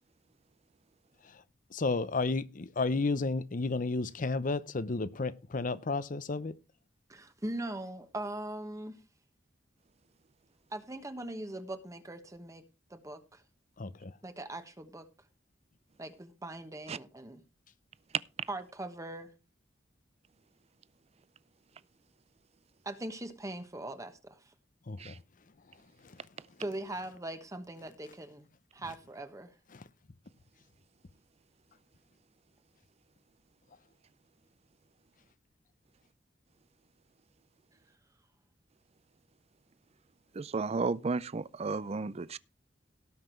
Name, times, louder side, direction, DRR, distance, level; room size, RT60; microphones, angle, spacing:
voice 1, 1.7-6.5 13.8-14.1 24.9-25.1 29.7-29.8, left 3 dB, 45° left, 0.7 m, -32 dB
voice 2, 7.1-9.0 10.7-12.6 12.9-13.4 14.2-15.1 16.0-17.4 18.5-19.3 22.8-24.5 26.6-29.5, right 1 dB, 15° right, 1.2 m, -41 dB
voice 3, 40.3-42.4, right 4 dB, 35° right, 0.5 m, -33 dB
17.5 x 5.9 x 4.5 m
head